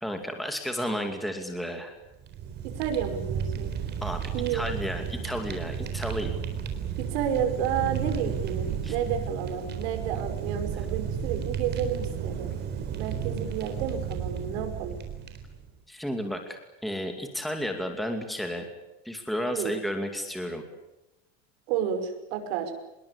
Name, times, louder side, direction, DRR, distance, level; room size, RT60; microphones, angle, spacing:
voice 1, 0.0-2.0 4.0-4.2 4.5-6.3 8.8-9.0 15.9-18.7 19.0-20.6, equal, ahead, 5 dB, 2.5 m, -32 dB
Fire, 2.1-15.7, right 8 dB, 30° right, 4.0 m, -33 dB
voice 2, 2.6-3.8 4.3-4.6 7.0-12.5 13.0-15.0 19.5-19.7 21.7-22.7, right 8 dB, 75° right, 6 dB, 5.7 m, -31 dB
sound 1, 4.6-12.5, right 3 dB, 15° right, 6.5 m, -47 dB
26.0 x 21.5 x 8.7 m, 0.93 s
cardioid pair, 160°, 32 cm